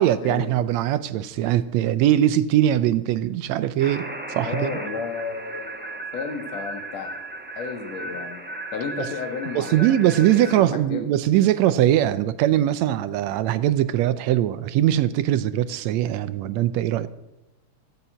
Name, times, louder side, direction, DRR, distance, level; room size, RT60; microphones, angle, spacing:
voice 1, 0.0-4.8 9.0-9.1 9.5-17.1, right 12 dB, 75° right, 14 dB, 1.8 m, -21 dB
sound 1, 3.8-10.6, right 2 dB, 15° right, 0.3 m, -36 dB
voice 2, 4.4-7.1 7.5-8.4 8.7-10.6 10.9-11.0, left 5 dB, 65° left, 4 dB, 3.0 m, -32 dB
15.0 x 8.4 x 8.9 m, 0.96 s
omnidirectional pair, 3.4 m